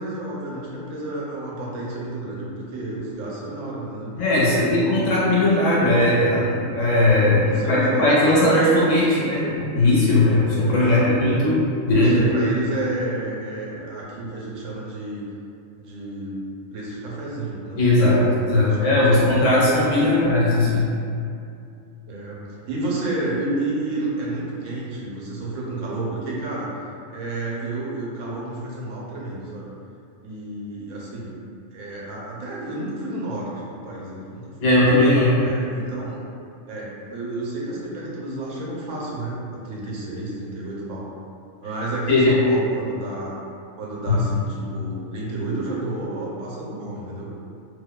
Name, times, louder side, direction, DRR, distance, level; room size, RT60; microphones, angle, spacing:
voice 1, 0.0-5.3 5.7-6.0 6.4-6.6 7.4-8.2 10.6-11.5 12.0-15.2 15.8-16.4 16.7-19.2 20.0-20.1 22.1-22.4 22.6-26.7 27.1-29.7 30.2-31.3 31.7-34.7 35.4-36.3 36.7-41.1 41.6-43.4 43.8-47.3, right 2 dB, 80° right, -5 dB, 0.9 m, -31 dB
voice 2, 4.2-12.3 17.8-20.9 34.6-35.4 42.1-42.3 44.1-44.2, left 1 dB, 75° left, -7 dB, 1.0 m, -18 dB
2.6 x 2.1 x 2.2 m, 2.5 s
omnidirectional pair, 1.3 m